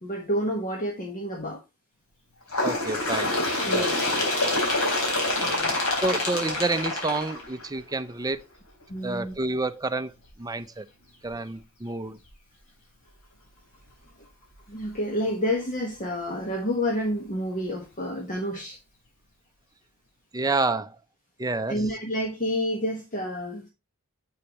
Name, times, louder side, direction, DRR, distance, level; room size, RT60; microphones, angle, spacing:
voice 1, 0.0-1.6 3.6-4.0 5.4-5.8 8.9-9.3 14.7-18.8 21.7-23.7, equal, 40° left, 1.4 m, -29 dB
Bird, 2.5-7.9 8.8-8.9 9.3-9.4 10.3-10.4 11.3-11.4 12.3-12.4, left 2 dB, 80° left, 4.0 m, -26 dB
voice 2, 2.6-3.3 3.7-4.3 5.4-5.5 6.0-8.4 9.0-10.1 10.4-10.8 11.2-12.2 20.3-20.9 21.4-21.8, right 3 dB, 15° right, 0.6 m, -29 dB
7.9 x 6.7 x 2.9 m
head